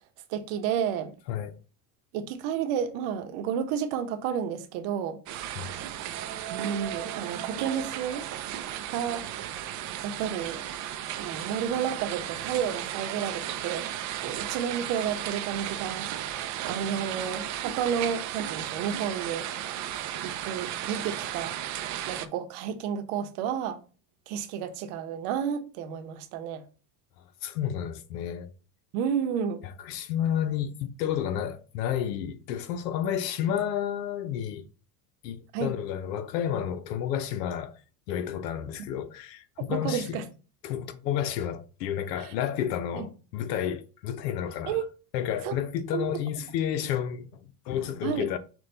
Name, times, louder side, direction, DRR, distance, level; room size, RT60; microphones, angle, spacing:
voice 1, 0.3-1.2 2.1-5.2 6.5-8.3 8.9-9.2 10.0-10.6 11.2-13.9 14.2-19.5 20.2-21.6 22.1-23.8 24.3-26.6 28.9-29.6 35.5-35.7 39.7-40.2 42.2-42.3 42.9-43.1 44.7-44.9 45.4-45.6 45.9-46.0 48.0-48.3, right 8 dB, 65° right, 0.9 m, -31 dB
sound 1, 5.3-22.3, right 11 dB, 40° right, 0.4 m, -35 dB
voice 2, 27.4-28.5 29.6-34.6 35.2-37.8 38.1-40.2 40.6-44.8 45.1-48.4, left 9 dB, 90° left, 0.7 m, -31 dB
6.0 x 2.4 x 3.3 m
supercardioid pair, 110°, 48 cm